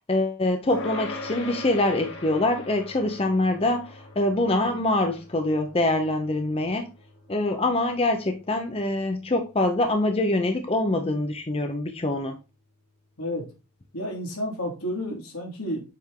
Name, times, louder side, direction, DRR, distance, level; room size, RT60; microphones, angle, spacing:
voice 1, 0.1-6.9 7.3-12.4, left 2 dB, 25° left, 0.6 m, -24 dB
sound 1, 0.7-10.4, left 2 dB, 55° left, 1.2 m, -41 dB
voice 2, 13.9-15.8, equal, 85° left, 2.6 m, -31 dB
7.4 x 3.5 x 3.7 m
head